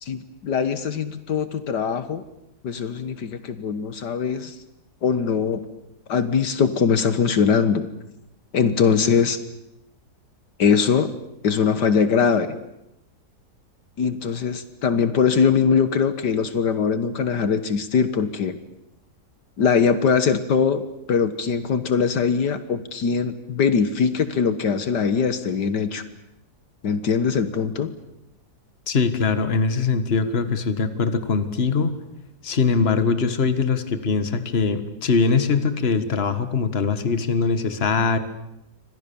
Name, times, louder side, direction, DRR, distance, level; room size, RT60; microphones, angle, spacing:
voice 1, 0.0-2.2 2.6-4.6 5.0-5.6 6.1-7.9 8.5-9.4 10.6-11.1 11.4-12.6 14.0-18.6 19.6-26.0 26.8-27.9, left 6 dB, 70° left, 12 dB, 1.9 m, -21 dB
voice 2, 28.9-32.0 32.4-38.2, left 4 dB, 35° left, 11 dB, 1.8 m, -22 dB
29.5 x 25.0 x 7.1 m, 0.84 s
omnidirectional pair, 1.9 m